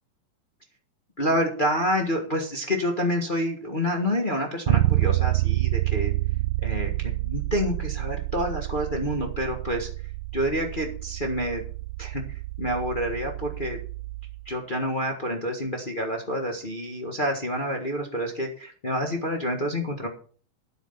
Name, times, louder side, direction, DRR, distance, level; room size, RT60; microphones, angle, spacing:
voice 1, 1.2-6.1 6.6-9.9 10.3-11.6 12.0-13.8 14.4-20.1, equal, 65° left, 1 dB, 0.5 m, -28 dB
Bass guitar, 4.7-14.5, right 18 dB, 80° right, 2.2 m, -28 dB
10.5 x 8.3 x 5.7 m, 0.43 s
omnidirectional pair, 3.9 m